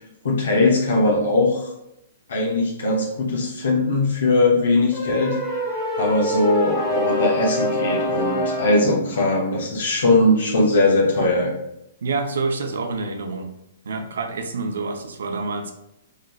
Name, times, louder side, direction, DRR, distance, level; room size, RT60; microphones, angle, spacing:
voice 1, 0.2-1.7 2.3-5.4 6.0-11.5, left 2 dB, 80° left, -3 dB, 1.1 m, -20 dB
sound 1, 4.9-8.9, left 1 dB, 10° left, 1.2 m, -25 dB
voice 2, 12.0-13.5 13.9-15.7, right 3 dB, 85° right, 5 dB, 0.7 m, -27 dB
5.0 x 3.0 x 2.3 m, 0.84 s
hypercardioid pair, 140°, 0 cm